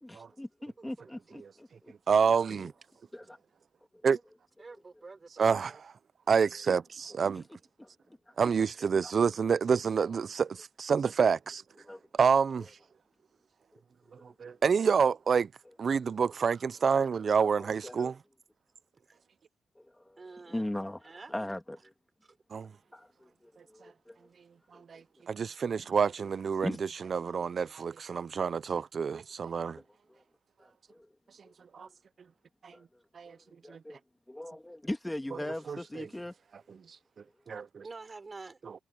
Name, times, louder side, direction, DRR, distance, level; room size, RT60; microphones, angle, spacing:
voice 1, 0.0-1.9 2.5-2.7 3.1-3.4 7.3-7.4 7.8-7.9 9.0-9.1 11.9-12.0 17.4-18.1 19.8-21.9 22.9-24.3 24.7-24.8 26.6-26.8 30.1-30.2 30.6-31.1 31.8-31.9 32.7-32.8 33.3-34.0 34.3-36.3, left 1 dB, 10° left, 2.4 m, -40 dB
voice 2, 0.8-1.4 4.6-5.8 20.2-20.6 21.0-21.3 22.2-22.4 37.8-38.6, right 3 dB, 30° right, 5.8 m, -48 dB
voice 3, 2.1-2.7 4.0-4.2 5.4-5.9 6.3-7.4 8.4-11.6 12.1-12.7 14.2-15.5 15.8-18.2 22.5-22.7 24.9-26.7 27.0-29.8 31.7-31.9 32.6-32.7 33.2-33.4 33.7-33.8 35.7-36.1 37.5-37.8 38.6-38.7, right 6 dB, 50° right, 0.4 m, -28 dB
cardioid pair, 95°, 0 cm